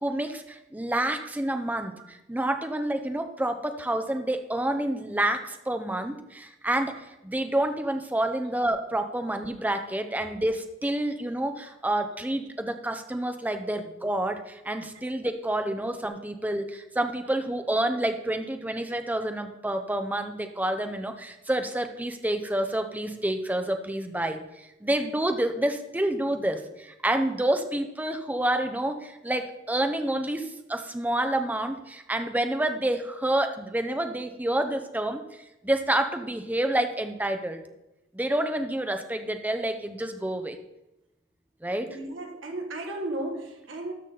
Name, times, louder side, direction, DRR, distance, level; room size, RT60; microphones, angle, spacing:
voice 1, 0.0-6.9 7.2-37.6 38.1-40.6 41.6-41.9, right 1 dB, 10° right, 6 dB, 0.6 m, -28 dB
voice 2, 41.9-43.9, right 1 dB, 65° right, 2 dB, 1.4 m, -34 dB
13.0 x 5.8 x 3.9 m, 0.93 s
head